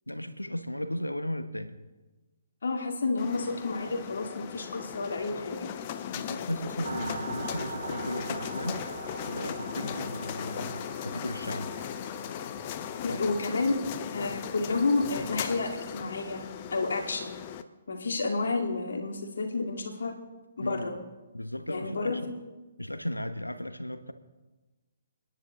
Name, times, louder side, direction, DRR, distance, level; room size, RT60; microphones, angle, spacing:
voice 1, 0.1-1.8 6.1-8.8 9.2-11.7 13.1-13.4 20.6-20.8 21.3-22.2 22.8-24.1, left 1 dB, 90° left, 10 dB, 1.1 m, -36 dB
voice 2, 2.6-5.7 13.0-13.8 14.1-16.4 16.7-17.4 17.9-20.1 20.6-20.9 21.7-22.2, left 3 dB, 60° left, 3 dB, 2.3 m, -30 dB
sound 1, 3.2-17.6, left 9 dB, 35° left, 0.8 m, -38 dB
sound 2, 6.8-13.6, right 5 dB, 60° right, 1.0 m, -42 dB
29.5 x 10.5 x 3.8 m, 1.2 s
figure-of-eight pair, 130°, 0 cm